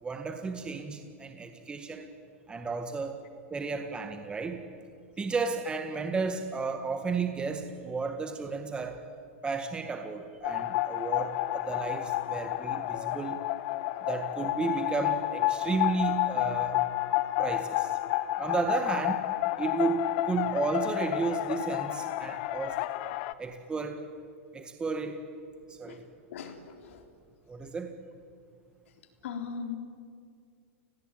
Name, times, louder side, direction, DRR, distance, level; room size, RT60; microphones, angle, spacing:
voice 1, 0.0-2.1 2.5-3.2 3.5-4.6 5.2-9.0 9.4-13.4 14.1-16.8 17.4-17.9 18.4-19.3 19.6-22.8 23.4-24.0 24.5-25.2 25.7-26.0 27.5-27.9, right 4 dB, 15° right, 6 dB, 1.8 m, -33 dB
sound 1, 10.4-23.3, left 17 dB, 50° left, 1.1 m, -30 dB
voice 2, 26.3-27.0 29.2-29.8, left 6 dB, 75° left, 5 dB, 3.5 m, -38 dB
29.5 x 19.0 x 9.0 m, 2.2 s
hypercardioid pair, 135°, 7 cm